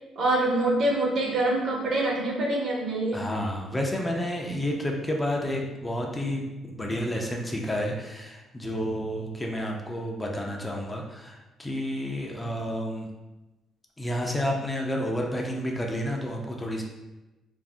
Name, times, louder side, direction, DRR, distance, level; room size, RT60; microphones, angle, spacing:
voice 1, 0.2-3.2, right 1 dB, 65° right, -2 dB, 0.8 m, -25 dB
voice 2, 3.1-13.1 14.0-16.8, equal, 15° left, 0 dB, 0.4 m, -30 dB
2.5 x 2.0 x 3.4 m, 1.1 s
cardioid pair, 90°, 0 cm